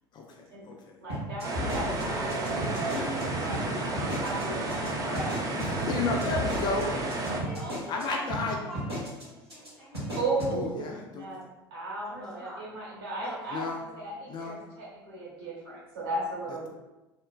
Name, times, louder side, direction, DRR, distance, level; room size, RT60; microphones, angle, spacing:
voice 1, 0.1-1.0 2.9-3.5 5.6-6.9 7.9-8.7 10.5-11.4 13.5-13.9 14.3-14.6, left 3 dB, 35° left, 1 dB, 0.4 m, -33 dB
voice 2, 1.0-2.8 3.1-5.4 9.8-11.4 11.7-16.7, right 2 dB, 65° right, -6 dB, 1.0 m, -36 dB
sound 1, 1.1-3.2 3.5-3.6 3.9-4.4 4.7-4.9 5.1-8.0 8.3-8.4 8.7-9.2 9.5-9.7 9.9-10.5, equal, 85° right, 1.0 m, -34 dB
sound 2, 1.4-7.4, right 2 dB, 25° right, 0.4 m, -31 dB
voice 3, 7.3-10.3 12.1-12.6 13.2-13.6, equal, 5° left, -6 dB, 0.9 m, -44 dB
2.8 x 2.1 x 2.3 m, 1.0 s
figure-of-eight pair, 65°, 13 cm